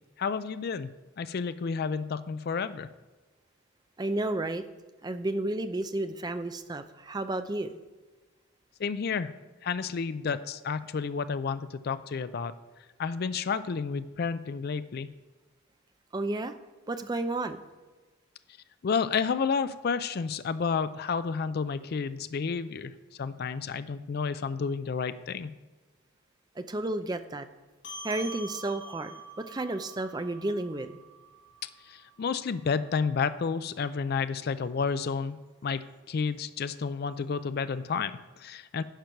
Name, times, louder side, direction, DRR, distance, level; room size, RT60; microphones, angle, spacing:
voice 1, 0.2-2.9 8.8-9.3 9.6-12.5 13.0-15.1 18.8-22.9 23.2-25.5 31.6-35.4 35.6-38.8, left 5 dB, 50° left, 13 dB, 0.4 m, -31 dB
voice 2, 4.0-4.6 5.0-7.7 16.1-16.5 16.9-17.6 26.6-27.5 28.0-29.1 29.5-30.9, right 2 dB, 20° right, 9 dB, 0.5 m, -32 dB
sound 1, 27.8-32.6, right 1 dB, 70° left, 2.9 m, -45 dB
11.5 x 4.6 x 5.7 m, 1.2 s
head